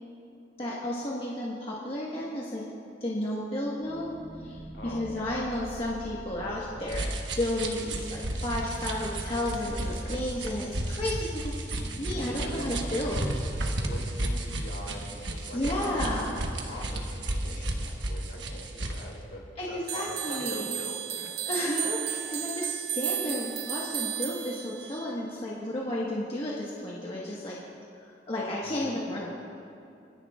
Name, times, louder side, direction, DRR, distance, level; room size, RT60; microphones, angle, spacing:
voice 1, 0.6-2.6 3.0-4.1 4.4-13.2 15.5-16.3 19.6-20.7 21.4-27.6 28.3-29.3, left 1 dB, 35° left, -5 dB, 1.4 m, -32 dB
sound 1, 3.8-14.1, right 1 dB, 10° right, 1.1 m, -45 dB
voice 2, 4.7-5.4 7.6-8.1 9.2-10.2 11.7-13.1 13.4-19.4 19.7-21.3 28.6-29.0, equal, 65° left, -3 dB, 3.2 m, -43 dB
sound 2, 6.9-19.1, right 1 dB, 85° right, 1.2 m, -33 dB
sound 3, 19.9-25.1, right 10 dB, 60° right, 0.7 m, -33 dB
30.0 x 10.5 x 2.4 m, 2.6 s
head